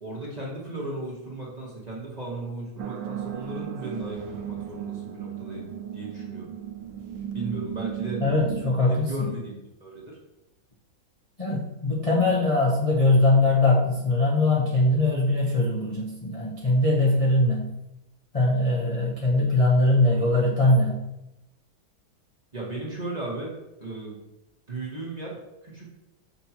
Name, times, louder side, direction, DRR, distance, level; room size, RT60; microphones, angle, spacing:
voice 1, 0.0-6.5 7.3-8.2 8.9-10.2 11.5-11.6 22.5-23.5 23.8-24.2 24.7-25.9, right 2 dB, 25° right, -4 dB, 1.0 m, -36 dB
sound 1, 2.8-8.7, right 9 dB, 75° right, 1.2 m, -35 dB
voice 2, 8.2-9.1 11.4-17.7 18.3-21.0, left 2 dB, 40° left, -6 dB, 0.4 m, -21 dB
6.8 x 5.4 x 2.9 m, 0.92 s
omnidirectional pair, 2.2 m